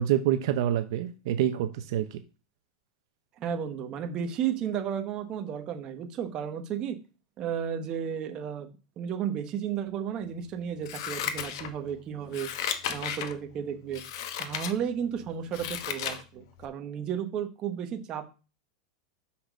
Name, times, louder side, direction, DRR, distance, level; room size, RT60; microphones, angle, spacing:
voice 1, 0.0-2.2, right 11 dB, 55° right, 9 dB, 0.8 m, -27 dB
voice 2, 3.4-7.0 7.4-8.7 9.0-12.5 12.9-14.0 14.4-18.3, right 8 dB, 25° right, 6 dB, 1.1 m, -33 dB
Scissors, 10.8-11.9 12.3-13.3 13.9-14.7 15.2-16.2 16.6-16.7, left 9 dB, 55° left, 1.1 m, -34 dB
5.9 x 5.7 x 6.4 m, 0.32 s
supercardioid pair, 170°, 3 cm